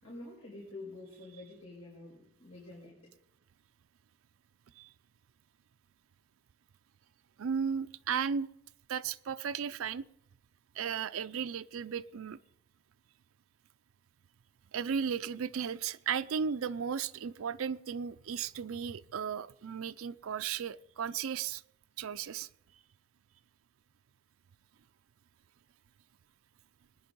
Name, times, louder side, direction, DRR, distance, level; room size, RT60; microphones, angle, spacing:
voice 1, 0.0-3.0, left 2 dB, 90° left, -5 dB, 5.5 m, -48 dB
voice 2, 7.4-8.5 8.9-10.0 10.7-12.4 14.7-21.6 22.0-22.5, right 7 dB, 85° right, 12 dB, 0.4 m, -35 dB
19.5 x 10.5 x 5.3 m, 0.76 s
head